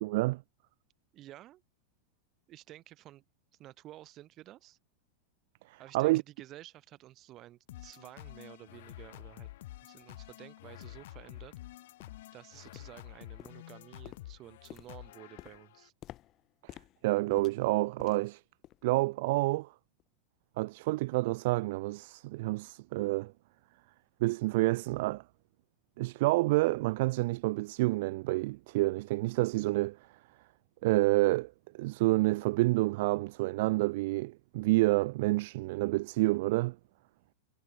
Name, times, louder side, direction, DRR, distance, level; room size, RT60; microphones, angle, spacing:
voice 1, 0.0-0.4 5.7-6.2 17.0-18.4 18.8-19.7 20.6-23.3 24.2-25.2 26.0-30.0 30.8-36.8, right 21 dB, 50° right, 0.5 m, -28 dB
voice 2, 1.1-1.6 2.5-3.2 3.6-4.8 5.8-9.5 9.8-11.5 12.3-15.9, right 14 dB, 35° right, 4.0 m, -52 dB
sound 1, 7.7-15.9, left 16 dB, 55° left, 2.3 m, -49 dB
sound 2, 10.0-10.1 10.7-10.8 11.3-11.5 12.0-12.3 12.7-13.1 13.4-18.3 18.6-18.9 19.3-19.5 20.0-20.1, left 14 dB, 35° left, 2.7 m, -53 dB
figure-of-eight pair, 90°, 0 cm